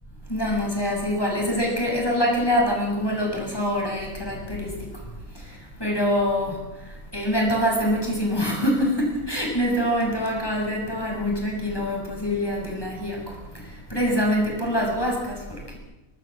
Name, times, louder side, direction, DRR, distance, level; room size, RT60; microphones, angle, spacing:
voice 1, 0.3-5.0 5.3-15.8, equal, 15° left, -1 dB, 6.6 m, -25 dB
25.0 x 18.5 x 7.5 m, 1.0 s
omnidirectional pair, 1.4 m